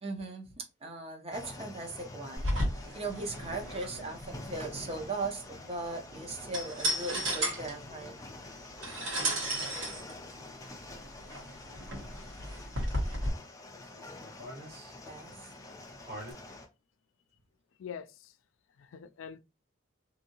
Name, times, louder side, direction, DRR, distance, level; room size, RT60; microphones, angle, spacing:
voice 1, 0.0-2.5 2.9-8.2 15.0-15.3, right 2 dB, 30° right, 0.6 m, -38 dB
sound 1, 1.3-16.7, left 2 dB, 15° left, 0.5 m, -47 dB
sound 2, 2.4-13.3, right 1 dB, 70° right, 1.3 m, -35 dB
sound 3, 13.7-16.3, equal, 55° right, 1.5 m, -46 dB
voice 2, 17.8-18.3 18.8-19.4, left 7 dB, 80° left, 0.4 m, -44 dB
2.7 x 2.6 x 2.8 m
head